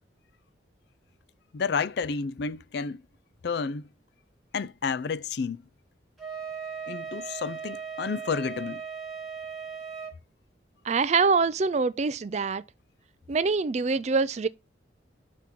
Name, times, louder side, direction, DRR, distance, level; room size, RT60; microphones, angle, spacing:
voice 1, 1.5-3.0 3.4-3.8 4.5-5.6 6.9-8.8, left 5 dB, 60° left, 0.4 m, -30 dB
Wind instrument woodwind instrument, 6.2-10.2, right 6 dB, ahead, 1.9 m, -37 dB
voice 2, 10.8-12.6 13.3-14.5, right 4 dB, 35° right, 0.4 m, -24 dB
6.2 x 3.6 x 5.8 m
head